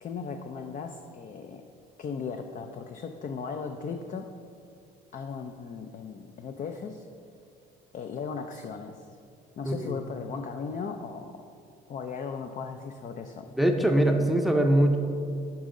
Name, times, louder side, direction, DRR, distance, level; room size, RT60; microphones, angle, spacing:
voice 1, 0.0-1.6 2.0-4.3 5.1-7.1 7.9-9.1 9.6-11.5 11.9-13.5, left 5 dB, 45° left, 5 dB, 0.5 m, -37 dB
voice 2, 9.6-10.0 13.6-15.0, right 1 dB, ahead, 4 dB, 0.6 m, -22 dB
10.5 x 5.2 x 3.7 m, 2.4 s
cardioid pair, 95°, 19 cm